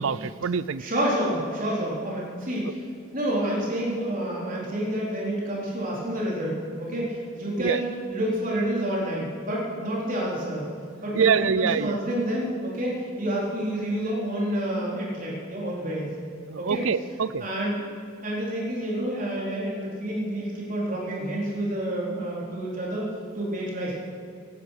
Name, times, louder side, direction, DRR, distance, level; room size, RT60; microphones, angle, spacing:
voice 1, 0.0-0.8 7.6-7.8 11.1-12.0 16.5-17.4, right 6 dB, 80° right, 17 dB, 0.5 m, -25 dB
voice 2, 0.8-2.8 3.1-10.7 11.0-16.1 16.6-16.8 17.4-17.9 18.2-23.0 23.3-23.9, right 1 dB, 40° right, -4 dB, 3.9 m, -29 dB
17.5 x 11.0 x 6.6 m, 2.3 s
head